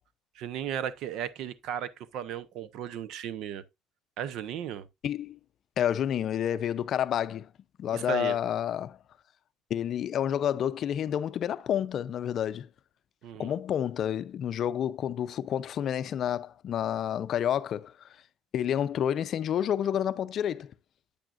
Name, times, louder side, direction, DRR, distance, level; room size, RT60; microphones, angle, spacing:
voice 1, 0.4-3.6 4.2-4.9 7.9-8.4 13.2-13.5, right 9 dB, 65° right, 0.8 m, -35 dB
voice 2, 5.0-5.4 5.8-7.5 7.8-9.0 9.7-12.7 13.4-17.9 18.5-20.7, left 10 dB, 50° left, 0.5 m, -29 dB
8.9 x 8.4 x 2.5 m
cardioid pair, 135°, 0 cm